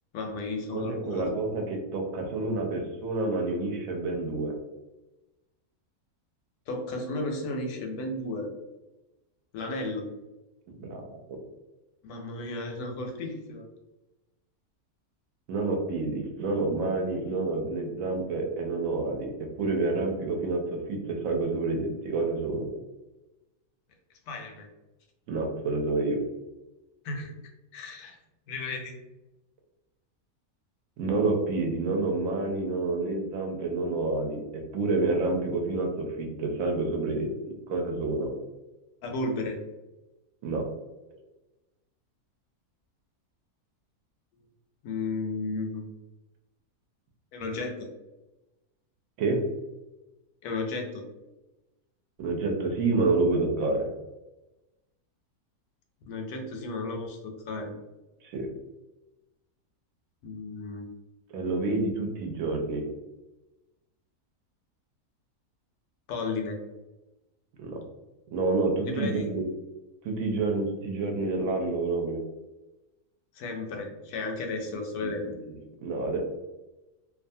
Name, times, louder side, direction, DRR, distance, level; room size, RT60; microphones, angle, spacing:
voice 1, 0.1-1.3 6.7-8.5 9.5-10.0 12.0-13.7 24.3-24.7 27.0-27.4 27.7-28.2 28.5-29.0 39.0-39.6 44.8-45.8 47.3-47.9 50.4-51.0 56.1-57.7 60.2-60.8 66.1-66.6 68.9-69.3 73.3-75.4, left 3 dB, 90° left, 2 dB, 1.1 m, -33 dB
voice 2, 0.7-4.5 10.7-11.4 15.5-19.3 19.6-20.6 20.9-22.7 25.3-26.2 31.0-34.4 34.7-35.9 36.2-37.3 37.7-38.3 40.4-40.6 49.2-49.4 52.2-53.9 58.2-58.5 61.3-62.8 67.6-67.8 68.3-69.4 70.0-72.2 74.7-74.8 75.0-75.1 75.5-75.6 75.8-76.2, right 3 dB, 70° right, 2 dB, 1.0 m, -28 dB
2.6 x 2.3 x 2.6 m, 1.0 s
omnidirectional pair, 1.6 m